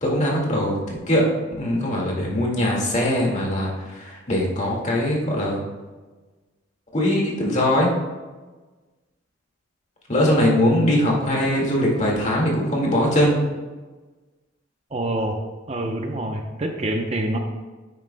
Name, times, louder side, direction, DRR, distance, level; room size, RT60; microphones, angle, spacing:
voice 1, 0.0-1.3 1.6-5.6 6.9-7.9 10.1-13.4, left 1 dB, 40° left, -2 dB, 2.0 m, -21 dB
voice 2, 14.9-15.4 15.7-17.4, right 1 dB, 35° right, 3 dB, 0.7 m, -26 dB
9.5 x 9.1 x 2.2 m, 1.3 s
head